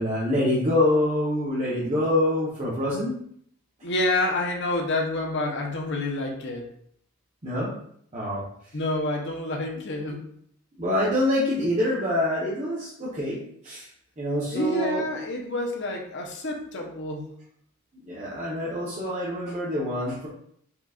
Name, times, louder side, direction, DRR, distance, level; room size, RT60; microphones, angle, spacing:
voice 1, 0.0-3.2 7.4-7.7 8.1-8.4 10.8-13.4 13.6-13.8 14.2-15.0 18.1-20.3, left 1 dB, 30° right, -8 dB, 1.0 m, -25 dB
voice 2, 3.8-6.6 8.7-10.3 14.5-17.3, left 1 dB, 55° left, 1 dB, 0.9 m, -28 dB
4.5 x 4.1 x 2.4 m, 0.65 s
head